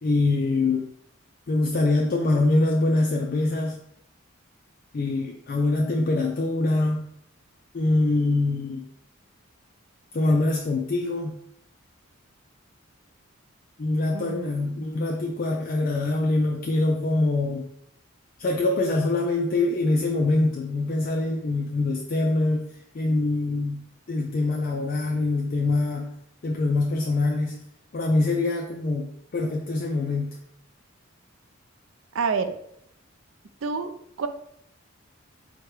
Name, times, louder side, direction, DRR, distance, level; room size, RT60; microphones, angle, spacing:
voice 1, 0.0-0.9 1.5-3.8 4.9-7.0 7.7-8.9 10.1-11.4 13.8-17.7 18.4-22.7 22.9-26.1 26.4-27.5 27.9-30.3, left 2 dB, 40° left, 1 dB, 0.4 m, -24 dB
voice 2, 14.1-14.7 32.1-32.5 33.6-33.9 34.2-34.3, right 5 dB, 70° right, 8 dB, 0.4 m, -28 dB
4.8 x 2.2 x 4.6 m, 0.73 s
head